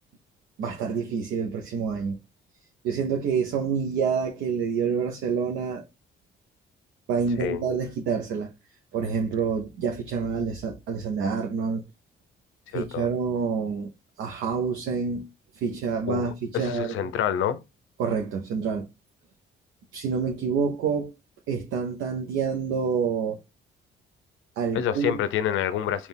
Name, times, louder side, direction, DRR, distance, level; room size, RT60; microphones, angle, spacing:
voice 1, 0.6-2.2 2.8-5.8 7.1-8.5 8.9-11.8 12.7-13.9 14.2-15.3 15.6-17.0 18.0-18.9 19.9-21.1 21.5-23.4 24.6-25.2, right 6 dB, 90° right, 0.7 m, -27 dB
voice 2, 12.7-13.1 16.1-17.6 24.7-26.1, left 10 dB, 85° left, 0.6 m, -27 dB
4.3 x 2.4 x 3.5 m
cardioid pair, 90°, 20 cm